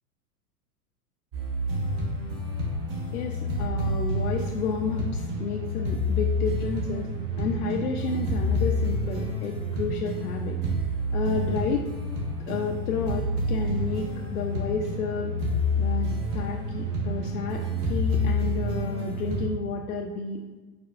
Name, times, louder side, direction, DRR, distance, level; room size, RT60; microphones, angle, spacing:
sound 1, 1.3-19.5, left 1 dB, 35° right, 1.1 m, -28 dB
voice 1, 3.1-7.1 7.4-10.6 11.1-11.9 12.5-14.1 14.3-15.3 15.8-20.4, left 4 dB, 75° left, 2 dB, 0.6 m, -31 dB
4.9 x 4.2 x 2.4 m, 1.2 s
hypercardioid pair, 100°, 45 cm